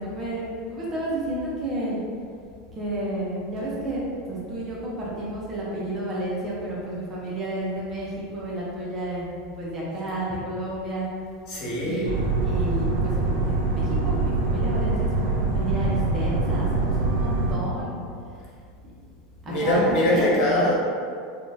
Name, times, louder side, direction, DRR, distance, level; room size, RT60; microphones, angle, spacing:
voice 1, 0.0-2.0 2.7-4.0 4.3-9.3 9.6-11.1 11.8-12.1 12.4-18.0 19.4-20.3, right 1 dB, 25° right, -6 dB, 0.6 m, -31 dB
voice 2, 11.5-12.1 19.5-20.8, left 1 dB, 50° left, -5 dB, 0.8 m, -22 dB
sound 1, 12.0-17.6, right 3 dB, 75° right, 0.5 m, -24 dB
3.5 x 2.2 x 2.6 m, 2.3 s
supercardioid pair, 160°, 0 cm